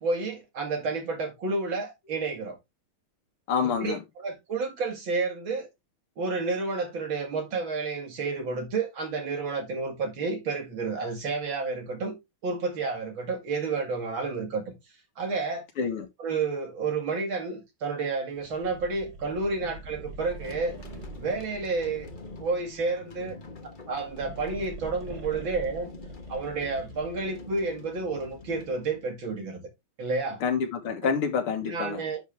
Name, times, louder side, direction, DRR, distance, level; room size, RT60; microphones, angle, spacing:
voice 1, 0.0-2.6 3.6-5.7 6.2-12.2 12.4-14.7 15.2-15.6 16.2-20.8 21.2-22.1 22.4-23.4 23.9-25.9 26.3-29.7 30.0-30.4 31.0-31.1 31.7-32.2, right 3 dB, 65° right, 2.9 m, -30 dB
voice 2, 3.5-4.0 15.8-16.1 30.4-32.0, left 6 dB, 90° left, 2.3 m, -27 dB
sound 1, 18.4-22.9 23.8-27.4, right 3 dB, 45° right, 2.8 m, -44 dB
sound 2, 20.2-29.7, left 3 dB, 30° left, 1.0 m, -46 dB
10.5 x 4.8 x 3.4 m
omnidirectional pair, 2.3 m